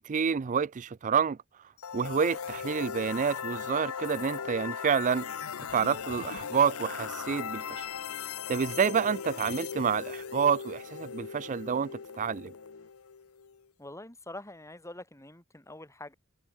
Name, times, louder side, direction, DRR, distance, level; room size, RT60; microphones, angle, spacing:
voice 1, 0.0-1.4 1.9-5.3 5.7-7.9 8.1-12.5, right 6 dB, 35° right, 0.4 m, -28 dB
sound 1, 1.8-13.6, left 7 dB, 90° left, 0.7 m, -38 dB
sound 2, 5.2-12.9, left 2 dB, 60° left, 5.4 m, -51 dB
voice 2, 13.8-16.1, left 1 dB, 15° left, 6.0 m, -45 dB
head